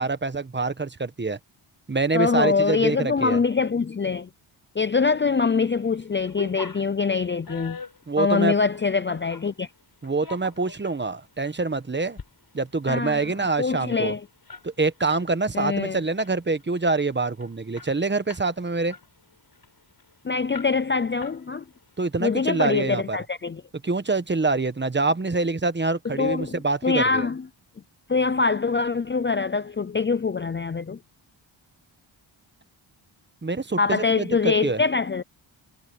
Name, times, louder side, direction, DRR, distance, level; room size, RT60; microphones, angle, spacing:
voice 1, 0.0-1.4 1.9-3.4 8.1-8.5 10.0-12.2 12.5-14.1 14.6-19.0 22.0-23.2 23.8-27.3 33.4-34.8, right 3 dB, 25° right, 1.2 m, -25 dB
voice 2, 2.1-4.3 4.8-7.8 8.2-9.7 12.9-13.2 13.6-14.2 15.5-16.0 20.2-21.6 22.2-23.6 26.0-27.5 28.1-31.0 33.8-35.2, left 4 dB, 25° left, 0.6 m, -24 dB
sound 1, 5.2-5.6 5.9-9.5 10.0-11.0 11.4-11.6 12.0-12.3 12.6-12.7 13.0-15.3 15.6-15.8 16.2-16.6 17.1-17.2 17.4-18.5 18.9-20.1 20.5-20.9 21.2-21.8, left 5 dB, 45° left, 6.8 m, -42 dB
cardioid pair, 90°, 48 cm